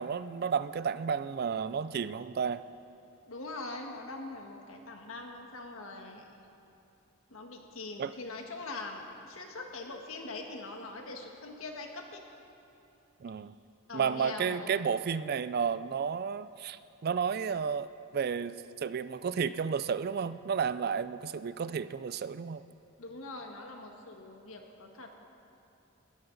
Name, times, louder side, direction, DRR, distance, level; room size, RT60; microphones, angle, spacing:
voice 1, 0.0-2.6 8.0-8.1 13.2-13.5 13.9-22.6, right 6 dB, 45° right, 14 dB, 0.4 m, -32 dB
voice 2, 3.2-6.4 7.3-12.2 13.9-14.7 23.0-25.1, left 2 dB, 70° left, 3 dB, 1.6 m, -42 dB
20.0 x 13.5 x 4.0 m, 3.0 s
head